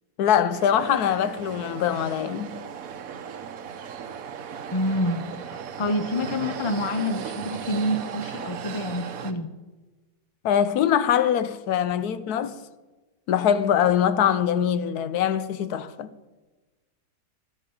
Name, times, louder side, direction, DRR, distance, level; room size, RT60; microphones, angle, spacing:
voice 1, 0.2-2.6 10.4-12.6 13.3-16.1, left 9 dB, 75° left, 1.2 m, -23 dB
sound 1, 0.5-9.3, right 7 dB, 65° right, 1.2 m, -36 dB
voice 2, 4.7-9.5, left 1 dB, 45° left, 0.3 m, -28 dB
13.0 x 9.7 x 7.0 m
omnidirectional pair, 1.7 m